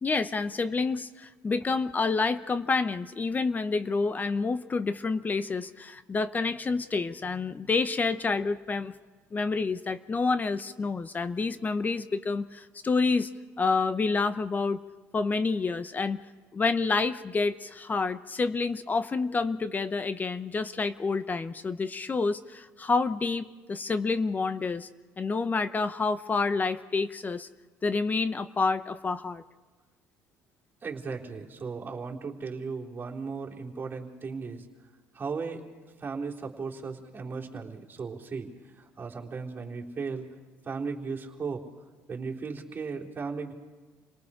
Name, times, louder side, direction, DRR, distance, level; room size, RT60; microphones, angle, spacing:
voice 1, 0.0-8.9 9.3-13.3 13.6-14.8 15.1-16.2 16.5-24.9 25.2-27.5 27.8-29.4, left 4 dB, 25° left, 13 dB, 0.8 m, -28 dB
voice 2, 30.8-34.7 35.1-35.6 36.0-38.5 38.8-40.3 40.7-41.6 42.1-43.5, right 5 dB, 30° right, -3 dB, 3.7 m, -36 dB
29.5 x 19.0 x 5.0 m, 1.3 s
supercardioid pair, 90°, 6 cm